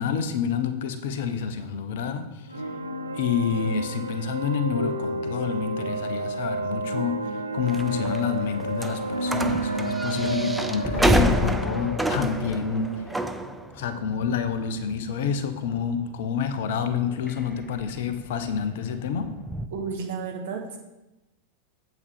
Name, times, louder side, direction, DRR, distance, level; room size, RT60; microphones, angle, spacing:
voice 1, 0.0-2.7 3.1-13.0 13.7-19.3, left 7 dB, 55° left, 9 dB, 0.9 m, -28 dB
sound 1, 2.5-14.1, right 2 dB, 85° right, 0.6 m, -31 dB
sound 2, 7.7-19.7, equal, 5° right, 0.5 m, -29 dB
voice 2, 19.7-20.8, right 5 dB, 55° right, 1 dB, 1.6 m, -32 dB
8.4 x 8.2 x 3.6 m, 0.99 s
figure-of-eight pair, 90°, 0 cm